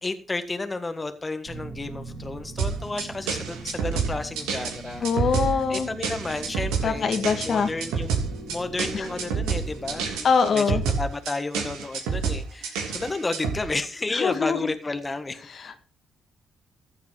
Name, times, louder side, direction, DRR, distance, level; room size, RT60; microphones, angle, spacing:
voice 1, 0.0-8.1 8.5-10.3 10.5-15.4, left 3 dB, 25° left, 9 dB, 1.5 m, -32 dB
sound 1, 1.4-10.1, right 2 dB, 50° right, 3.8 m, -41 dB
sound 2, 2.6-13.6, right 6 dB, 80° right, 3.1 m, -28 dB
voice 2, 5.0-5.9 6.8-7.7 10.2-10.8 14.2-14.7 15.6-15.8, left 5 dB, 55° left, 8 dB, 1.8 m, -23 dB
15.0 x 7.7 x 4.8 m, 0.36 s
hypercardioid pair, 50°, 0 cm